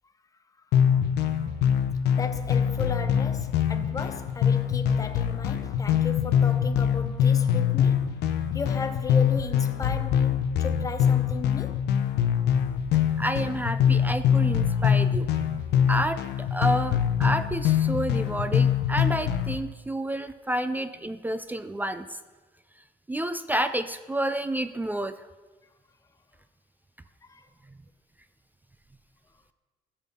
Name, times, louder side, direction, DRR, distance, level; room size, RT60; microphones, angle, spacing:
sound 1, 0.7-19.5, left 8 dB, 80° left, 0.7 m, -24 dB
voice 1, 2.1-8.2 8.5-11.8 27.2-27.5, left 4 dB, 20° left, 0.7 m, -36 dB
voice 2, 13.2-15.3 15.9-22.2 23.1-25.2, right 1 dB, 10° right, 0.3 m, -29 dB
15.0 x 5.7 x 3.6 m
cardioid pair, 110°, 17 cm